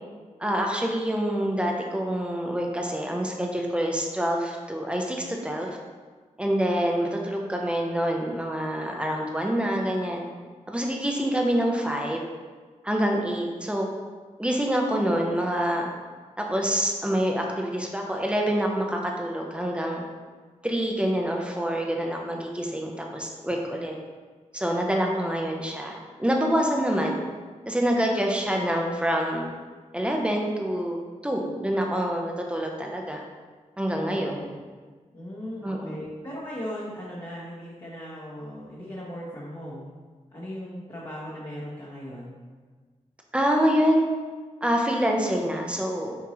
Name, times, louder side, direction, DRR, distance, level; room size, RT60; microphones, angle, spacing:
voice 1, 0.4-5.7 6.4-10.2 10.7-12.2 12.8-13.9 14.4-15.9 16.4-20.0 20.6-23.9 24.5-27.2 27.7-29.5 29.9-33.2 33.8-34.5 35.6-36.1 43.3-44.1 44.6-46.2, equal, 10° right, 0 dB, 0.9 m, -26 dB
voice 2, 34.1-34.4 35.1-39.9 40.3-42.4, equal, 40° left, -10 dB, 1.4 m, -38 dB
7.1 x 4.5 x 3.2 m, 1.5 s
wide cardioid pair, 100°, 13 cm